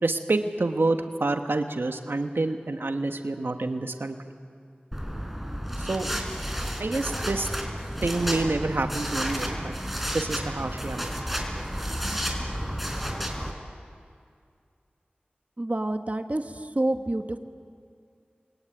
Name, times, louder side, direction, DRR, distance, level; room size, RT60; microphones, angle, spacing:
voice 1, 0.0-4.2 5.8-6.1 6.8-7.5 8.0-9.7 10.1-11.1 12.1-12.2, right 2 dB, 80° right, 6 dB, 1.4 m, -27 dB
sound 1, 4.9-13.5, equal, 5° right, 4.6 m, -31 dB
voice 2, 15.6-17.4, right 1 dB, 40° right, 6 dB, 1.4 m, -28 dB
28.5 x 22.5 x 9.4 m, 2.3 s
wide cardioid pair, 40°, 4 cm